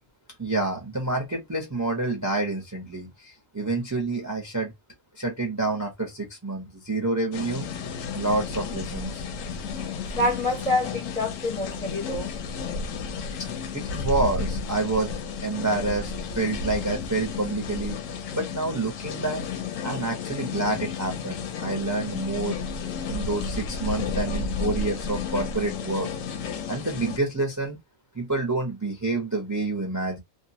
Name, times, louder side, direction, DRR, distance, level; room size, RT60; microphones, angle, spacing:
voice 1, 0.4-4.7 5.1-7.7 8.1-9.2 13.4-13.5 13.7-15.1 15.4-18.0 18.3-19.4 19.8-22.6 23.1-26.1 26.7-27.8 28.1-30.2, right 2 dB, 20° right, 0.5 m, -28 dB
sound 1, 7.3-27.2, left 5 dB, 80° left, 1.0 m, -32 dB
voice 2, 10.1-12.3, left 1 dB, 35° left, 0.7 m, -27 dB
2.5 x 2.2 x 2.7 m
omnidirectional pair, 1.4 m